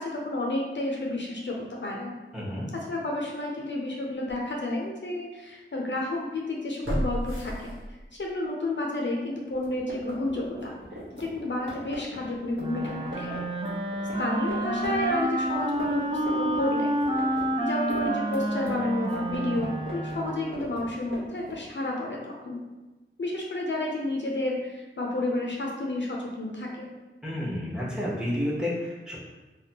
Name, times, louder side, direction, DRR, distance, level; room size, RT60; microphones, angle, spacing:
voice 1, 0.0-2.1 2.7-7.8 8.2-10.8 11.2-13.4 14.2-16.9 17.6-22.6 23.2-26.9, left 2 dB, 60° left, -1 dB, 0.5 m, -31 dB
voice 2, 2.3-2.7 27.2-29.2, left 1 dB, 5° right, -6 dB, 1.0 m, -30 dB
sound 1, 3.6-3.7 4.3-4.4 6.8-8.3 8.7-8.8, equal, 75° right, 1.0 m, -31 dB
sound 2, 9.5-14.2 14.5-14.6 14.8-16.6 16.8-21.6, equal, 55° right, 1.1 m, -41 dB
Wind instrument woodwind instrument, 12.6-20.7, right 1 dB, 25° right, 0.4 m, -29 dB
3.5 x 2.2 x 2.7 m, 1.1 s
wide cardioid pair, 55°, 21 cm